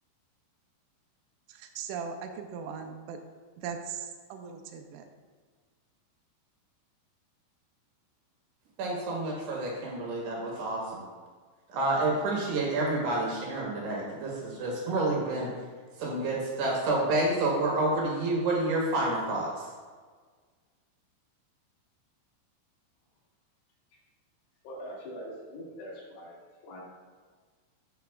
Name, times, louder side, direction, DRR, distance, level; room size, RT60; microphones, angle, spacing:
voice 1, 1.5-3.2 3.6-5.1, right 6 dB, 85° right, 5 dB, 3.3 m, -39 dB
voice 2, 8.8-11.0 11.7-15.5 16.0-19.7, right 2 dB, 65° right, -3 dB, 3.1 m, -29 dB
voice 3, 24.6-26.4 26.6-26.8, equal, 65° left, -5 dB, 3.5 m, -42 dB
13.0 x 6.1 x 2.3 m, 1.5 s
omnidirectional pair, 5.8 m